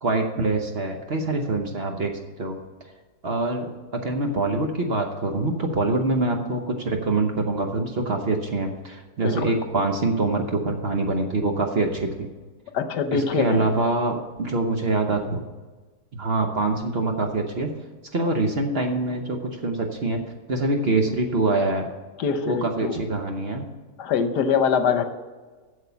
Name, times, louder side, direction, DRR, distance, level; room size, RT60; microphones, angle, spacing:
voice 1, 0.0-2.1 2.4-2.6 3.2-3.7 3.9-12.3 13.1-15.4 16.1-17.7 18.1-20.2 20.5-21.9 22.5-23.7, right 2 dB, 45° right, 3 dB, 1.0 m, -24 dB
voice 2, 9.2-9.6 12.7-13.7 22.2-23.0 24.0-25.1, left 6 dB, 80° left, 8 dB, 1.5 m, -24 dB
8.1 x 7.1 x 7.0 m, 1.3 s
omnidirectional pair, 1.8 m